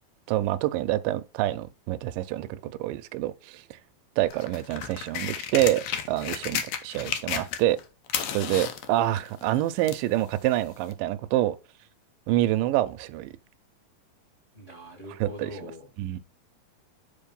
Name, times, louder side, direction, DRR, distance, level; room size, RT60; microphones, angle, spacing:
voice 1, 0.3-3.8 4.2-7.8 8.3-11.6 12.3-13.3 15.1-15.7 16.0-16.2, right 14 dB, 80° right, 2.1 m, -27 dB
sound 1, 4.3-7.8 8.1-10.1 10.9-11.0, left 9 dB, 80° left, 1.5 m, -33 dB
voice 2, 14.5-15.9, left 1 dB, 25° left, 1.8 m, -42 dB
5.8 x 4.7 x 5.2 m
omnidirectional pair, 4.1 m